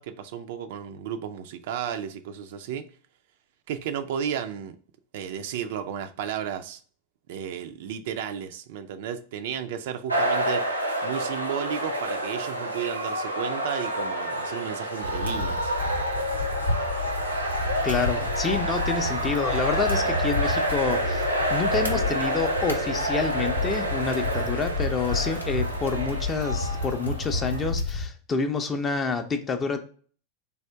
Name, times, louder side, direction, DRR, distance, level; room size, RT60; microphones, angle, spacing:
voice 1, 0.0-2.9 3.7-4.7 5.1-6.8 7.3-10.7 11.0-15.7, right 8 dB, 50° right, 0.3 m, -33 dB
sound 1, 10.1-27.7, right 1 dB, 90° right, 0.7 m, -29 dB
sound 2, 15.0-28.1, left 3 dB, 85° left, 0.6 m, -31 dB
voice 2, 17.8-29.8, left 4 dB, 20° left, 0.5 m, -28 dB
3.4 x 2.4 x 3.3 m
figure-of-eight pair, 90°, 0 cm